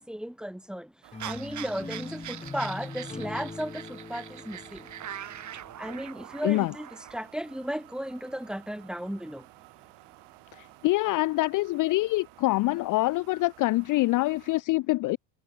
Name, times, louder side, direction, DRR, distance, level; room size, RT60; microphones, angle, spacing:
voice 1, 0.1-0.9 1.2-4.6 5.8-6.9 7.1-9.4, equal, ahead, 1.5 m, -35 dB
sound 1, 1.0-14.6, right 21 dB, 70° right, 4.0 m, -53 dB
sound 2, 1.1-6.2, left 3 dB, 15° left, 2.1 m, -42 dB
sound 3, 1.2-7.2, right 10 dB, 40° right, 1.7 m, -42 dB
voice 2, 10.6-15.2, left 19 dB, 50° left, 0.4 m, -25 dB
supercardioid pair, 90°, 43 cm